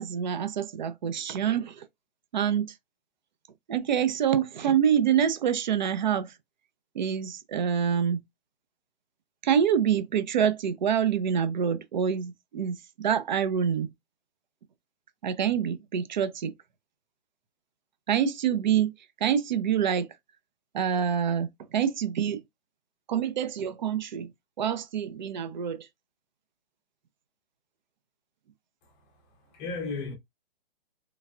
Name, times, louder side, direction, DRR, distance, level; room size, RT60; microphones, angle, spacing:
voice 1, 0.0-1.9 2.3-2.8 3.7-6.4 6.9-8.2 9.4-13.9 15.2-16.5 18.1-18.9 19.2-20.1 20.7-22.4 23.1-24.3 24.6-25.9, right 8 dB, 50° right, 0.6 m, -26 dB
voice 2, 28.8-30.1, left 4 dB, 15° left, 0.6 m, -36 dB
3.2 x 2.3 x 2.4 m
hypercardioid pair, 155°, 30 cm